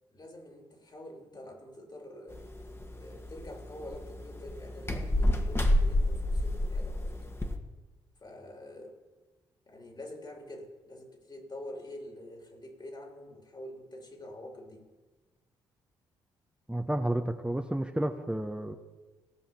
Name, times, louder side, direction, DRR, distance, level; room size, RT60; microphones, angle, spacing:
voice 1, 0.1-2.4 2.9-7.3 8.2-8.9 9.7-14.9, left 1 dB, 40° left, 2 dB, 3.2 m, -46 dB
sound 1, 2.3-7.5, left 1 dB, 20° left, 1.7 m, -30 dB
voice 2, 16.7-18.8, right 1 dB, 10° right, 5 dB, 1.1 m, -31 dB
17.0 x 5.7 x 7.1 m, 1.2 s
hypercardioid pair, 45°, 12 cm